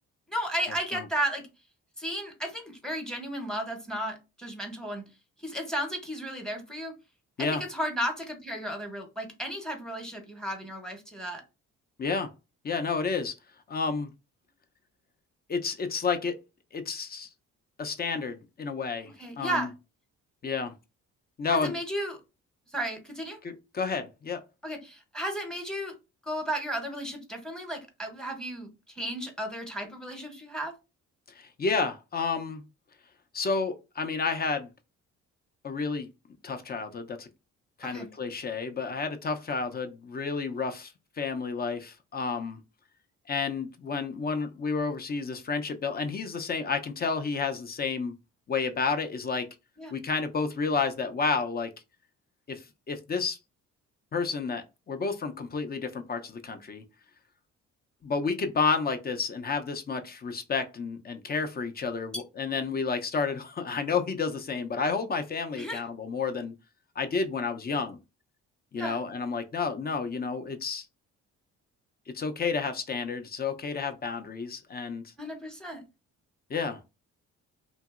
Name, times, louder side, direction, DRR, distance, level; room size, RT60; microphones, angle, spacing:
voice 1, 0.3-1.5 2.0-5.0 5.4-6.9 7.4-11.4 19.2-19.7 21.6-22.2 22.7-23.4 24.6-25.9 26.2-30.7 37.8-38.1 49.8-49.9 65.6-65.8 68.8-69.0 75.2-75.8, equal, ahead, 0.9 m, -34 dB
voice 2, 12.0-12.3 12.6-13.3 13.7-14.1 15.5-16.4 16.7-17.3 17.8-19.7 20.4-20.7 21.4-21.7 23.4-24.4 31.3-32.6 33.3-34.7 35.6-36.1 36.4-37.3 37.8-42.6 43.3-48.1 48.5-49.5 49.9-51.7 52.5-53.4 54.1-56.8 58.0-66.5 67.0-68.0 68.7-70.9 72.1-75.0 76.5-76.8, left 4 dB, 30° left, 0.5 m, -30 dB
2.9 x 2.6 x 2.4 m
cardioid pair, 90°, 30 cm